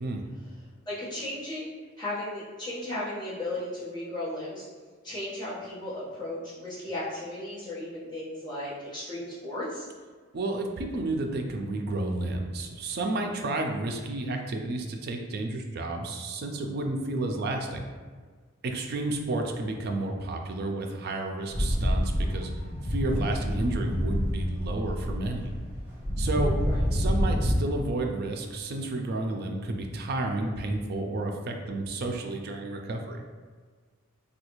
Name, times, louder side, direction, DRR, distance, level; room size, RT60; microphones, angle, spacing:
voice 1, 0.8-4.6 5.0-9.9 26.6-26.8, left 1 dB, 20° left, -11 dB, 1.1 m, -35 dB
voice 2, 10.3-17.8 18.6-22.5 22.9-25.5 26.2-26.6 26.9-33.2, right 2 dB, 50° right, 3 dB, 0.4 m, -31 dB
sound 1, 21.5-27.5, equal, 10° right, 0.7 m, -28 dB
3.2 x 2.3 x 3.0 m, 1.5 s
head